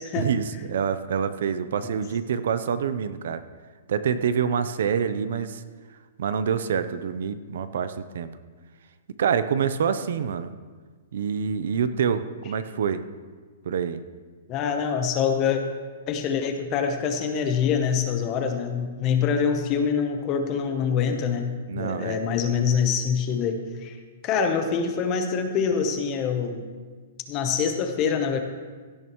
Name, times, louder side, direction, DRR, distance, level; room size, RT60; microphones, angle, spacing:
voice 1, 0.2-3.4 3.9-5.6 6.2-8.3 9.2-10.5 11.1-13.0 13.6-14.0 21.7-22.2, right 7 dB, 55° right, 12 dB, 0.6 m, -26 dB
voice 2, 14.5-15.6 16.1-24.0 24.2-26.6 27.3-28.4, left 6 dB, 20° left, 6 dB, 0.8 m, -25 dB
16.5 x 12.5 x 3.1 m, 1.5 s
hypercardioid pair, 180°, 0 cm